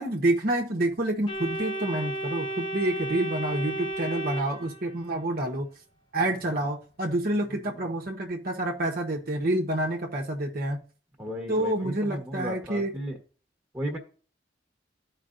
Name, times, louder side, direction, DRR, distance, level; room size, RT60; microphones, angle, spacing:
voice 1, 0.0-5.7 6.1-10.8 11.5-12.9, right 1 dB, 60° right, 0 dB, 1.1 m, -28 dB
Organ, 1.3-5.2, right 1 dB, 30° left, 1.0 m, -33 dB
voice 2, 11.2-13.2 13.7-14.0, equal, 15° right, 0 dB, 1.3 m, -35 dB
14.0 x 5.0 x 2.5 m, 0.40 s
head